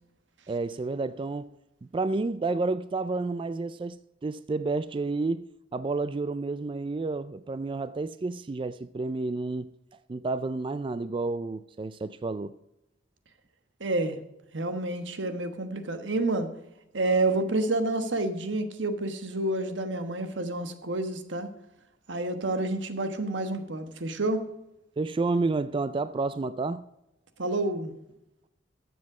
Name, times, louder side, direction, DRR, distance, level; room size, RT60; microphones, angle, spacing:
voice 1, 0.5-1.5 1.9-9.7 10.1-12.6 25.0-26.9, right 3 dB, 30° right, 0.3 m, -30 dB
voice 2, 13.8-14.2 14.5-16.5 16.9-21.5 22.1-24.4 27.4-27.9, right 2 dB, 85° right, 1.2 m, -29 dB
14.0 x 7.4 x 4.8 m
head